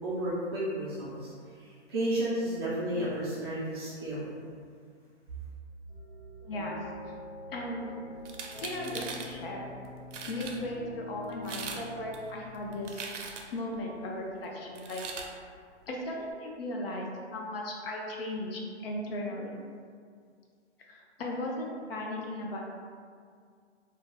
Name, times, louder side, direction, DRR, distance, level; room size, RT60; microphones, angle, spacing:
voice 1, 0.0-1.3 1.6-4.3, right 1 dB, 25° right, -9 dB, 0.4 m, -32 dB
sound 1, 5.9-12.8, left 1 dB, 75° left, 1.1 m, -45 dB
voice 2, 6.4-6.8 7.5-8.0 8.6-9.7 10.3-13.0 13.5-15.0 15.9-19.6 20.9-22.6, left 1 dB, 55° left, -1 dB, 0.5 m, -36 dB
sound 2, 8.2-9.3 9.8-9.9 10.1-10.6 11.3-11.8 12.1-13.6 14.7-15.3, right 5 dB, 85° right, 0.5 m, -40 dB
2.3 x 2.0 x 3.2 m, 2.1 s
hypercardioid pair, 140°, 35 cm